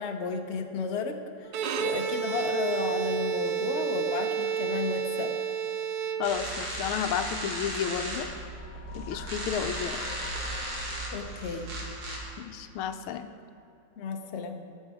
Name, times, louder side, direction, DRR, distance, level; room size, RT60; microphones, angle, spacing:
voice 1, 0.0-5.3 11.1-11.7 14.0-14.6, left 5 dB, 55° left, 5 dB, 0.7 m, -33 dB
Bowed string instrument, 1.5-6.7, right 8 dB, 65° right, 1.0 m, -30 dB
voice 2, 6.2-8.3 8.9-10.0 12.4-13.3, left 8 dB, 85° left, 8 dB, 1.5 m, -32 dB
sound 1, 6.2-12.2, right 1 dB, 80° right, 3.1 m, -36 dB
sound 2, 8.4-12.7, left 6 dB, 70° left, 1.9 m, -47 dB
19.0 x 7.3 x 4.9 m, 2.7 s
omnidirectional pair, 2.3 m